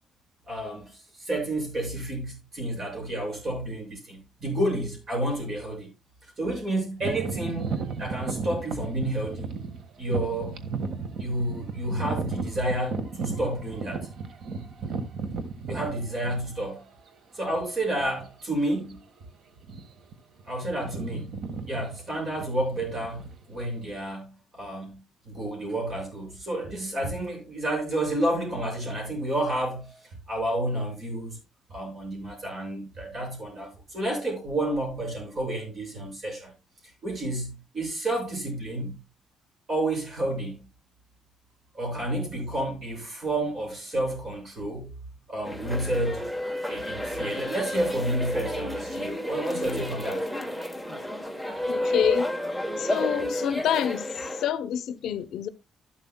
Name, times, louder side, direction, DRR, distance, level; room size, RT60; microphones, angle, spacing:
voice 1, 0.5-5.9 6.2-7.7 8.0-9.6 10.0-10.6 11.2-14.1 15.7-16.8 17.3-19.0 20.5-21.3 21.6-31.4 31.7-36.5 37.0-39.0 39.7-40.7 41.7-44.9 45.3-46.2 46.7-50.3, right 1 dB, 35° right, 6.5 m, -30 dB
sound 1, 7.0-16.8 17.4-17.5 18.2-18.4 18.7-18.9 19.6-20.1 20.4-23.8, right 4 dB, 55° right, 1.5 m, -34 dB
sound 2, 45.4-54.5, left 1 dB, 5° right, 1.1 m, -31 dB
voice 2, 51.7-52.3 52.8-55.5, left 10 dB, 70° left, 0.6 m, -28 dB
12.5 x 11.5 x 2.2 m
cardioid pair, 170°, 0 cm